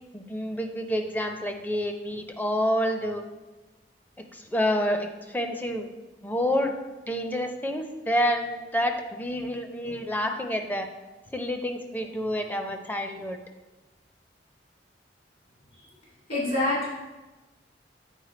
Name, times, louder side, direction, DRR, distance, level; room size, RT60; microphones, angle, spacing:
voice 1, 0.1-3.2 4.3-5.9 6.2-6.8 7.1-10.9 11.3-13.4, equal, 10° left, 5 dB, 0.5 m, -28 dB
voice 2, 16.3-16.9, left 1 dB, 55° left, -6 dB, 2.2 m, -25 dB
8.1 x 4.6 x 4.2 m, 1.2 s
head